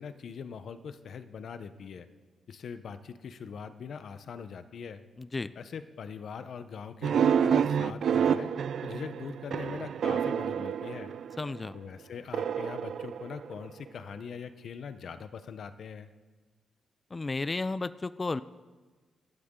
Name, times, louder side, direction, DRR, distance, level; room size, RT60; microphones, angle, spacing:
voice 1, 0.0-2.1 2.5-5.0 5.6-8.5 8.8-11.1 11.7-16.1, left 6 dB, 60° left, 11 dB, 0.9 m, -42 dB
voice 2, 5.2-5.5 11.4-11.8 17.1-18.4, left 3 dB, 20° left, 15 dB, 0.3 m, -33 dB
sound 1, 7.0-11.6 12.3-13.9, right 7 dB, 60° right, 0.4 m, -28 dB
24.0 x 12.0 x 3.8 m, 1.4 s
wide cardioid pair, 160°, 0 cm